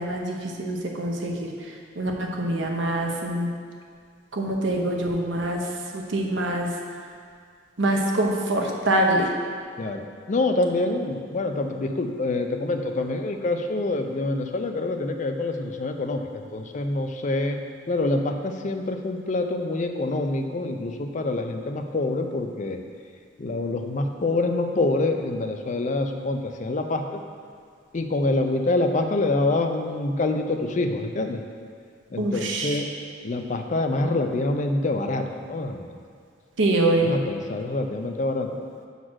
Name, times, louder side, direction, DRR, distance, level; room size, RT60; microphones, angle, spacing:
voice 1, 0.0-1.5 2.0-3.5 4.3-5.6 5.9-6.7 7.8-9.3 32.2-32.8 36.6-37.2, right 1 dB, 80° right, 1 dB, 0.9 m, -24 dB
voice 2, 9.8-17.6 17.9-22.8 23.4-27.0 27.9-31.4 32.1-32.9 33.2-35.8 37.0-38.5, left 2 dB, 40° left, 5 dB, 0.5 m, -26 dB
6.2 x 4.0 x 6.2 m, 2.1 s
head